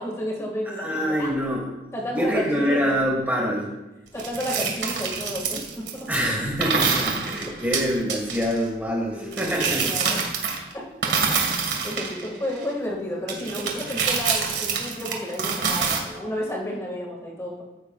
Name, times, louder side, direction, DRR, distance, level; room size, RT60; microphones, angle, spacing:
voice 1, 0.0-1.3 1.9-3.1 4.1-6.1 7.2-7.6 9.1-10.2 10.7-11.1 11.4-17.6, equal, 15° left, -2 dB, 2.0 m, -32 dB
voice 2, 0.8-1.7 2.1-3.7 6.1-10.2, equal, 10° right, -1 dB, 1.7 m, -25 dB
sound 1, 4.2-6.2 6.6-8.6 9.3-10.7 11.0-12.7 13.3-16.0, right 5 dB, 85° right, 1.8 m, -26 dB
14.5 x 9.3 x 2.4 m, 1.0 s
head